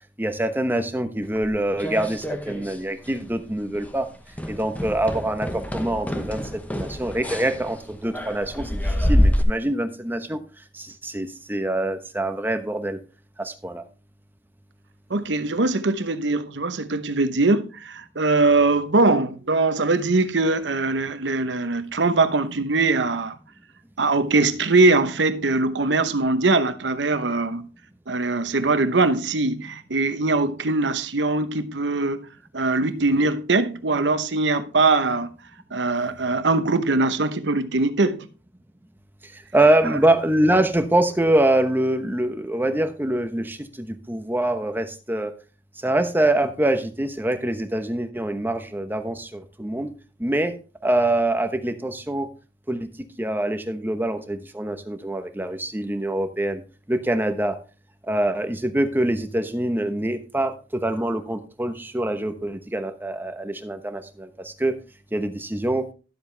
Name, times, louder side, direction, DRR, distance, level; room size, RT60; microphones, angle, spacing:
voice 1, 0.2-4.1 4.5-6.4 6.7-10.4 10.7-13.0 13.4-13.8 39.2-45.3 45.8-49.9 50.2-50.5 50.8-52.3 52.7-52.9 53.2-56.6 56.9-57.6 58.1-64.7 65.1-65.8, right 1 dB, 10° right, 1.0 m, -24 dB
sound 1, 1.4-2.8 3.1-3.4 3.7-3.9 4.3-9.4, left 1 dB, 10° left, 1.1 m, -26 dB
voice 2, 15.1-23.4 24.0-27.7 28.1-32.3 32.5-35.3 35.7-38.3, right 3 dB, 80° right, 0.9 m, -21 dB
12.0 x 7.9 x 3.4 m
head